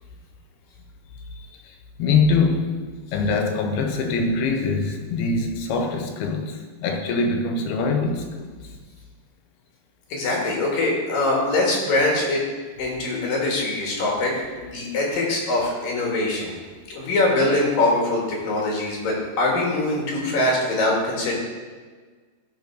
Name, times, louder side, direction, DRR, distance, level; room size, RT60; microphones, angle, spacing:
voice 1, 1.6-2.8 3.1-8.5, left 4 dB, 80° left, 4 dB, 2.9 m, -23 dB
voice 2, 10.1-12.4 12.8-14.3 14.6-16.6 16.9-21.4, left 2 dB, 65° left, -2 dB, 3.5 m, -23 dB
14.5 x 5.8 x 4.7 m, 1.5 s
omnidirectional pair, 4.5 m